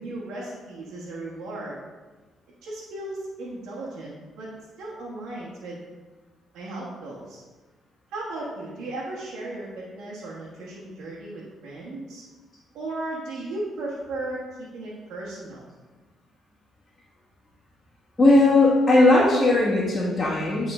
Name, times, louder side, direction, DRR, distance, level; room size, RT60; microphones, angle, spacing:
voice 1, 0.0-1.8 2.6-4.5 4.8-5.8 6.5-7.4 8.1-12.2 12.7-15.6, right 2 dB, 80° right, -7 dB, 1.3 m, -36 dB
voice 2, 18.2-20.7, left 2 dB, 20° left, -9 dB, 1.6 m, -18 dB
8.6 x 3.7 x 3.7 m, 1.3 s
cardioid pair, 90°, 0 cm